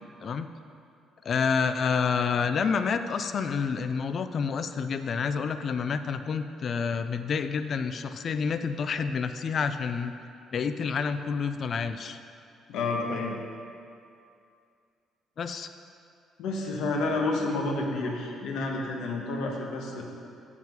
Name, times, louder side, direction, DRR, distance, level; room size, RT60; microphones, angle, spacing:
voice 1, 1.2-10.1 10.5-12.2 15.4-15.7, left 5 dB, 35° left, 10 dB, 0.3 m, -28 dB
voice 2, 12.7-13.4 16.4-20.0, left 2 dB, 75° left, 1 dB, 1.2 m, -30 dB
7.3 x 5.9 x 6.0 m, 2.5 s
cardioid pair, 175°, 0 cm